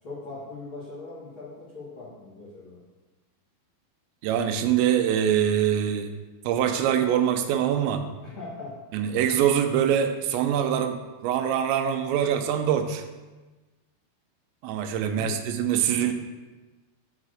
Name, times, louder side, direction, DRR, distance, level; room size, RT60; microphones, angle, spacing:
voice 1, 0.0-2.8 8.2-8.8 15.1-15.4, left 3 dB, 80° left, -8 dB, 1.1 m, -40 dB
voice 2, 4.2-6.1 6.4-8.0 8.9-13.0 14.6-16.1, right 9 dB, 85° right, 6 dB, 2.9 m, -24 dB
7.3 x 4.1 x 6.3 m, 1.2 s
omnidirectional pair, 5.1 m